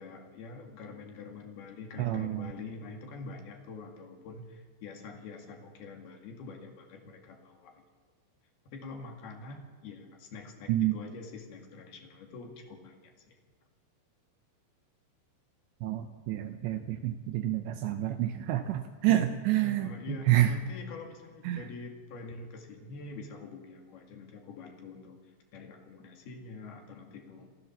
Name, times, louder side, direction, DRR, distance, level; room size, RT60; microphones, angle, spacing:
voice 1, 0.0-7.8 8.7-13.4 19.1-19.3 19.6-27.5, left 3 dB, 60° left, 3 dB, 3.7 m, -45 dB
voice 2, 2.0-2.5 10.7-11.0 15.8-20.5 21.4-21.7, right 13 dB, 80° right, 8 dB, 2.7 m, -28 dB
27.5 x 14.5 x 7.2 m, 1.5 s
omnidirectional pair, 5.7 m